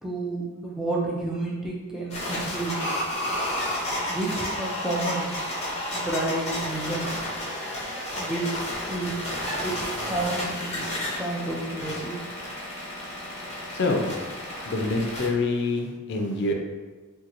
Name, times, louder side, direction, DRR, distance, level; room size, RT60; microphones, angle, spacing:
voice 1, 0.0-2.8 4.1-5.3 5.9-7.1 8.2-8.6 8.9-9.1 9.6-10.8 11.2-12.1 14.5-14.7, right 2 dB, ahead, -4 dB, 0.4 m, -30 dB
sound 1, 2.1-15.3, left 1 dB, 30° left, 0.8 m, -31 dB
voice 2, 13.7-14.1 14.7-16.5, left 3 dB, 55° left, 2 dB, 0.4 m, -26 dB
3.8 x 2.2 x 2.9 m, 1.3 s
head